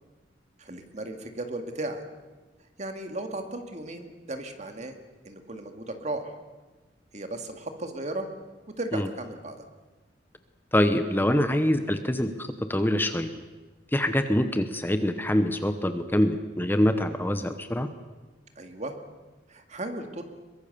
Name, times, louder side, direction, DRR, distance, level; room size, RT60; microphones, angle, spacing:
voice 1, 0.6-2.0 2.8-5.0 5.2-6.3 7.1-8.3 8.8-9.6 18.6-18.9 19.5-20.2, right 2 dB, 40° right, 6 dB, 2.3 m, -35 dB
voice 2, 10.7-13.3 13.9-17.9, left 1 dB, 10° left, 9 dB, 1.0 m, -25 dB
23.0 x 22.0 x 6.9 m, 1.2 s
head